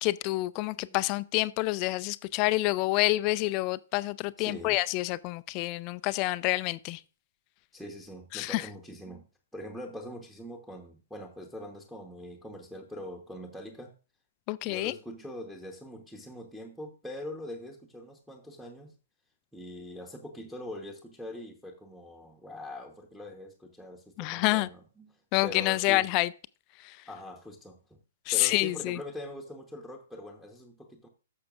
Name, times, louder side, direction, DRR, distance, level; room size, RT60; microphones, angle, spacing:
voice 1, 0.0-7.0 8.3-8.7 14.5-14.9 24.2-24.7 25.3-26.3 26.8-27.0 28.3-29.0, left 20 dB, 30° left, 0.3 m, -28 dB
voice 2, 0.6-1.0 4.4-4.8 7.7-9.2 9.5-13.9 14.6-18.9 19.5-25.1 25.4-26.1 27.1-28.0 28.3-31.1, left 1 dB, ahead, 1.0 m, -43 dB
14.5 x 6.7 x 2.4 m
figure-of-eight pair, 115°, 0 cm